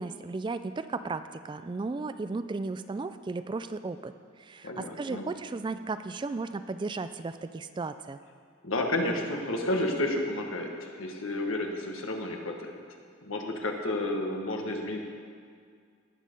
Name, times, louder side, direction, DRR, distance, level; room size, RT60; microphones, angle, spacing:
voice 1, 0.0-4.1 4.4-8.2, right 3 dB, 25° right, 11 dB, 0.3 m, -35 dB
voice 2, 4.6-5.2 8.6-12.8 13.2-15.0, left 1 dB, 75° left, 2 dB, 1.4 m, -31 dB
17.5 x 6.4 x 5.3 m, 2.1 s
head